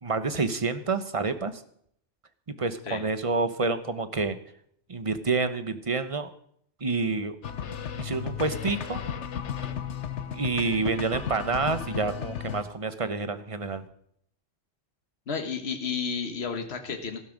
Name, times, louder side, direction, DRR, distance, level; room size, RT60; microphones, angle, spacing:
voice 1, 0.0-1.5 2.6-4.4 4.9-6.3 6.8-7.4 8.0-9.0 10.3-13.8, right 3 dB, 30° right, 11 dB, 1.0 m, -28 dB
sound 1, 7.4-12.6, left 8 dB, 80° left, 1.3 m, -34 dB
voice 2, 15.3-17.2, left 5 dB, 65° left, 5 dB, 1.6 m, -32 dB
15.5 x 12.0 x 5.2 m, 0.68 s
omnidirectional pair, 1.2 m